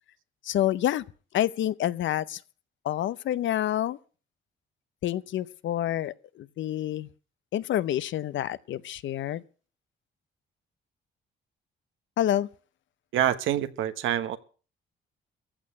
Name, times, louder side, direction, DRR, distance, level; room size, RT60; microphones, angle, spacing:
voice 1, 0.4-1.0 1.3-2.4 2.8-4.0 5.0-7.1 7.5-9.4 12.2-12.5, left 12 dB, 70° left, 0.7 m, -28 dB
voice 2, 13.1-14.4, right 11 dB, 80° right, 1.3 m, -26 dB
15.0 x 6.7 x 9.3 m
cardioid pair, 90°, 20 cm